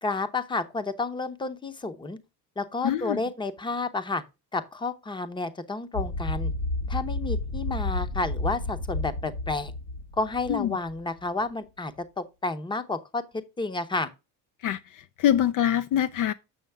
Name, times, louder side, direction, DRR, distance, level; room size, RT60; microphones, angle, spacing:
voice 1, 0.0-2.2 2.6-4.2 4.5-6.5 6.9-9.7 10.2-14.1, left 3 dB, 10° left, 0.7 m, -31 dB
voice 2, 2.8-3.2 10.5-10.8 14.6-16.3, left 10 dB, 50° left, 0.5 m, -25 dB
sound 1, 5.9-11.0, left 2 dB, 80° left, 1.9 m, -31 dB
7.8 x 6.2 x 3.4 m
cardioid pair, 140°, 40 cm